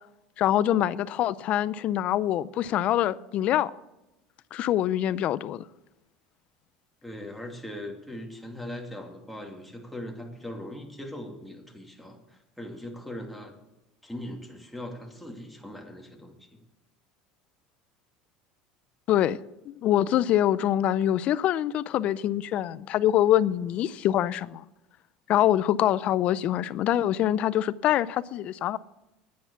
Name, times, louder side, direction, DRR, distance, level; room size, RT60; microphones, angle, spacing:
voice 1, 0.4-3.7 4.5-5.6 19.1-19.4 19.7-24.6 25.3-28.8, left 12 dB, 50° left, 0.5 m, -24 dB
voice 2, 7.0-13.6 14.0-16.6, left 1 dB, ahead, 2.5 m, -40 dB
10.0 x 9.5 x 6.9 m
supercardioid pair, 115°, 3 cm